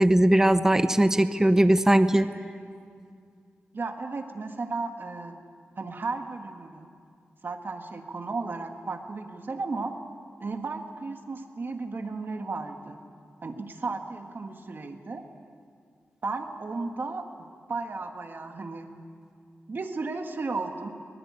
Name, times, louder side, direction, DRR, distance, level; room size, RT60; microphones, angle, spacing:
voice 1, 0.0-2.3, right 1 dB, 10° right, 11 dB, 0.8 m, -20 dB
voice 2, 3.7-5.4 5.8-6.9 7.4-9.9 10.4-13.0 13.4-15.2 16.2-17.3 17.7-18.9 19.7-20.9, right 3 dB, 50° right, 5 dB, 1.8 m, -34 dB
23.0 x 19.5 x 8.6 m, 2.2 s
wide cardioid pair, 115°, 5 cm